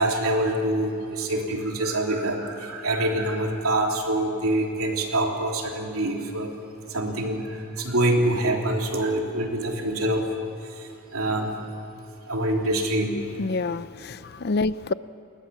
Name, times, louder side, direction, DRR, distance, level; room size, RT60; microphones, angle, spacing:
voice 1, 0.0-6.5 6.9-7.4 7.8-10.2 11.1-11.5 12.3-13.2, right 1 dB, 80° right, 1 dB, 3.3 m, -25 dB
voice 2, 13.4-14.9, left 3 dB, 45° left, 16 dB, 0.5 m, -27 dB
29.0 x 21.0 x 7.1 m, 2.7 s
head